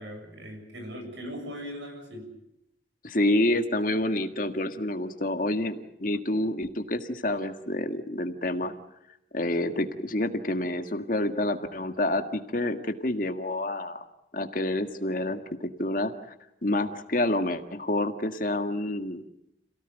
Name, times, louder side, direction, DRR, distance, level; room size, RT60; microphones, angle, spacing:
voice 1, 0.0-2.4 6.1-6.2, equal, 90° right, 5 dB, 7.4 m, -39 dB
voice 2, 3.0-8.7 9.3-14.0 14.3-16.1 16.6-19.2, left 1 dB, 50° left, 6 dB, 1.8 m, -28 dB
28.0 x 17.5 x 9.2 m, 0.85 s
head